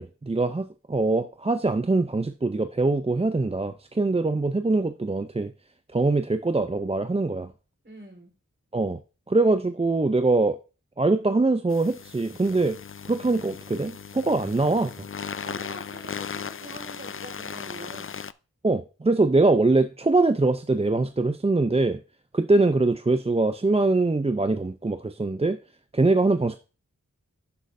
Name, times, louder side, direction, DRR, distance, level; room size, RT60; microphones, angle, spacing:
voice 1, 0.0-5.5 5.9-7.5 8.7-9.0 9.3-10.6 11.0-12.8 13.0-15.1 18.6-22.0 22.3-25.6 25.9-26.6, right 3 dB, 20° right, 0.5 m, -23 dB
voice 2, 7.8-8.3 15.4-18.2, right 2 dB, 35° right, 3.8 m, -44 dB
sound 1, 11.7-18.3, left 6 dB, 40° left, 0.4 m, -37 dB
11.5 x 6.2 x 2.6 m
wide cardioid pair, 40°, 32 cm